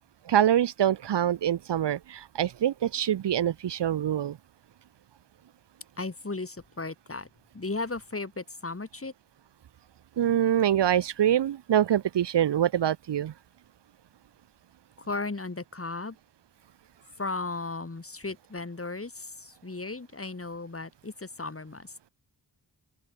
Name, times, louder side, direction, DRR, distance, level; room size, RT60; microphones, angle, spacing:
voice 1, 0.3-4.4 10.2-13.3, right 10 dB, 70° right, 0.8 m, -25 dB
voice 2, 6.0-7.3 7.5-9.1 15.0-16.2 17.2-21.9, left 3 dB, 30° left, 5.7 m, -35 dB
open air
wide cardioid pair, 80°, 43 cm